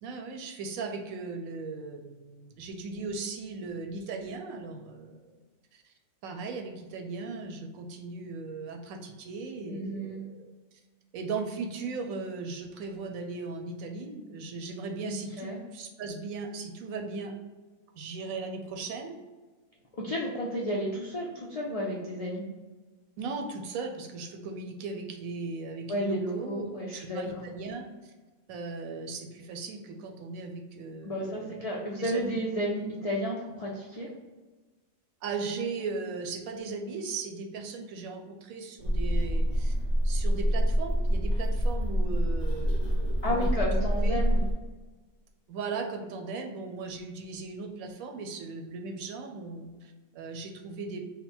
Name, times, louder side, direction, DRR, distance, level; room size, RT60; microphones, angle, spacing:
voice 1, 0.0-5.4 5.7-5.9 6.2-10.5 11.1-17.3 17.9-19.2 23.2-28.1 28.5-31.6 32.0-32.4 35.2-39.8 40.0-43.7 44.0-44.2 45.5-51.0, right 4 dB, 85° right, 4 dB, 1.0 m, -38 dB
voice 2, 9.7-10.2 15.0-15.6 20.0-22.4 25.9-27.4 31.0-34.1 43.2-44.4, equal, 75° left, -3 dB, 0.3 m, -32 dB
sound 1, 38.8-44.5, equal, 25° left, 0.6 m, -26 dB
3.8 x 2.1 x 4.3 m, 1.3 s
omnidirectional pair, 1.4 m